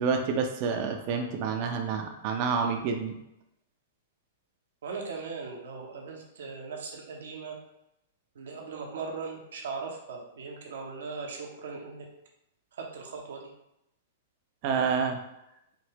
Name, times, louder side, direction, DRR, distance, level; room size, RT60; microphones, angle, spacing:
voice 1, 0.0-3.2 14.6-15.2, right 5 dB, 45° right, 3 dB, 0.6 m, -28 dB
voice 2, 4.8-7.6 8.3-12.0 12.7-13.5, right 4 dB, 70° right, 1 dB, 0.9 m, -39 dB
5.1 x 2.7 x 3.0 m, 0.83 s
hypercardioid pair, 110°, 0 cm